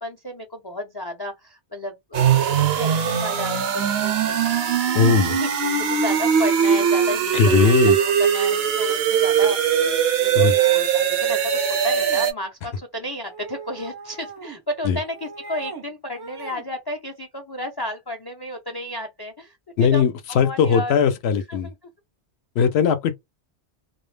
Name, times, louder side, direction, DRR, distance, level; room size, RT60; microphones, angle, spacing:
voice 1, 0.0-9.6 10.2-20.0 20.4-20.9 21.5-21.9 22.6-22.7, left 1 dB, 35° left, 0.4 m, -33 dB
sound 1, 2.1-12.3, right 8 dB, 70° right, 0.8 m, -20 dB
voice 2, 4.9-5.4 7.3-8.0 10.3-10.6 14.9-15.0 19.8-21.7 22.6-23.2, left 6 dB, 75° left, 0.8 m, -19 dB
sound 2, 11.2-12.3 13.2-14.6 15.0-15.9 16.1-16.7, right 3 dB, 35° right, 0.4 m, -39 dB
2.3 x 2.0 x 3.2 m
omnidirectional pair, 1.1 m